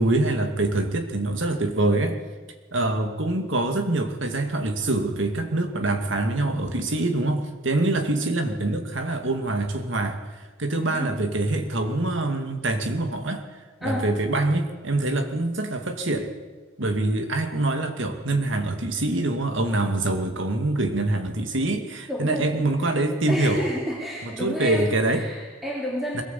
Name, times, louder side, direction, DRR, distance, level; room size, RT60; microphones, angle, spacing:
voice 1, 0.0-2.2 2.7-13.4 13.8-16.3 16.8-23.7 24.2-25.3 26.1-26.2, right 2 dB, 65° right, 6 dB, 2.5 m, -25 dB
voice 2, 10.7-11.2 13.8-14.1 22.1-22.5 22.8-23.0 23.3-26.2, equal, ahead, -4 dB, 3.3 m, -30 dB
21.5 x 18.0 x 8.5 m, 1.4 s
head